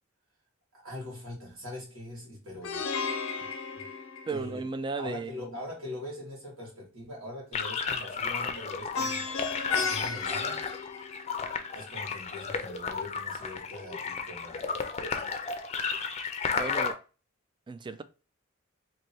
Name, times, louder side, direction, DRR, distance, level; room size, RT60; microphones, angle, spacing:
voice 1, 0.7-2.9 3.4-3.5 3.7-3.9 4.3-4.6 5.0-10.6 11.7-14.9, left 1 dB, 75° right, 1.9 m, -42 dB
Plucked string instrument, 2.6-4.8 8.9-11.5, left 5 dB, 80° left, 0.7 m, -34 dB
voice 2, 4.3-5.5 16.6-17.0 17.7-18.0, right 3 dB, 20° right, 0.3 m, -35 dB
sound 1, 7.5-16.9, left 5 dB, 30° left, 0.5 m, -33 dB
3.1 x 2.7 x 4.4 m
head